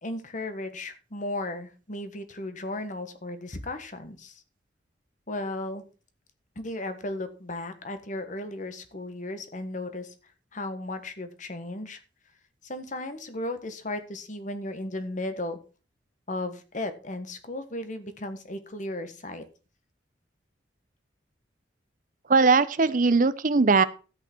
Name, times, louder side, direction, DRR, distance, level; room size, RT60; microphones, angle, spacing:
voice 1, 0.0-4.4 5.3-5.8 6.5-10.1 10.5-12.0 12.6-15.6 16.3-19.4, left 2 dB, 45° left, 9 dB, 1.4 m, -35 dB
voice 2, 22.3-23.8, right 4 dB, 45° right, 14 dB, 0.7 m, -20 dB
13.0 x 8.6 x 4.5 m, 0.35 s
head